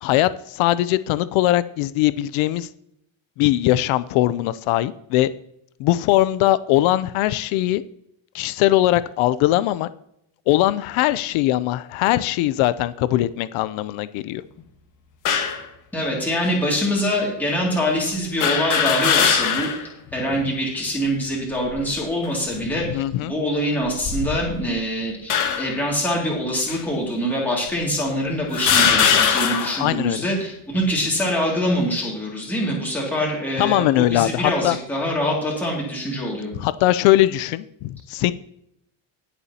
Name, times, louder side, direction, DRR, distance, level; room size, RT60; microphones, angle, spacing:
voice 1, 0.0-2.7 3.4-5.3 5.8-7.8 8.3-9.9 10.5-14.4 22.7-23.3 29.8-30.2 33.6-34.8 36.5-38.3, left 15 dB, 85° left, 15 dB, 0.6 m, -20 dB
sound 1, 15.2-15.6 16.5-16.6 18.4-19.9 20.3-20.4 21.5-22.0 22.7-22.9 23.9-24.7 25.3-25.8 26.7-26.8 27.7-27.8 28.5-29.9, left 7 dB, 40° left, 1.4 m, -21 dB
voice 2, 15.9-19.7 20.1-36.5, equal, 5° left, -4 dB, 2.4 m, -24 dB
20.0 x 7.0 x 2.9 m, 0.76 s
cardioid pair, 175°, 47 cm